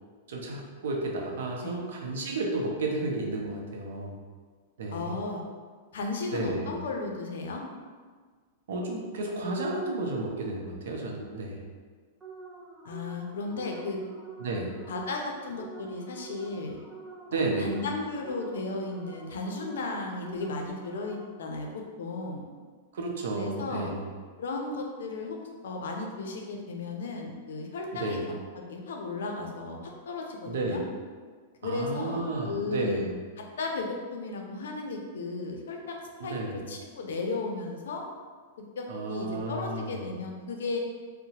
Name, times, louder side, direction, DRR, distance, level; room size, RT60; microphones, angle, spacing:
voice 1, 0.3-4.2 4.8-5.2 6.3-6.8 8.7-11.6 14.4-14.7 17.3-17.8 22.9-24.1 27.9-28.2 30.5-30.8 31.6-33.2 36.2-36.6 38.9-40.0, right 2 dB, 80° right, 0 dB, 0.5 m, -32 dB
voice 2, 4.9-5.4 5.9-7.6 12.8-14.0 14.9-16.8 17.3-22.4 23.3-23.9 24.4-25.4 25.6-28.2 28.5-29.8 30.1-30.8 31.6-33.0 33.4-38.0 38.8-40.8, left 3 dB, 85° left, 2 dB, 0.4 m, -35 dB
sound 1, 12.2-21.6, right 4 dB, 10° right, 0.3 m, -47 dB
2.8 x 2.0 x 2.8 m, 1.5 s
supercardioid pair, 155°, 0 cm